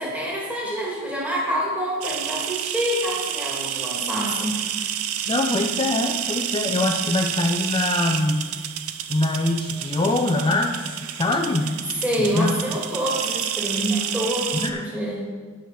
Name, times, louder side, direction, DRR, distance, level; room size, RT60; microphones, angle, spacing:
voice 1, 0.0-4.8 11.9-15.3, equal, 5° right, -5 dB, 2.4 m, -27 dB
sound 1, 2.0-14.7, right 10 dB, 75° right, 0.6 m, -29 dB
voice 2, 5.3-8.5 9.1-10.7 11.2-11.8 12.3-12.6 14.5-14.9, left 2 dB, 25° left, 2 dB, 0.6 m, -23 dB
8.8 x 7.2 x 5.7 m, 1.5 s
head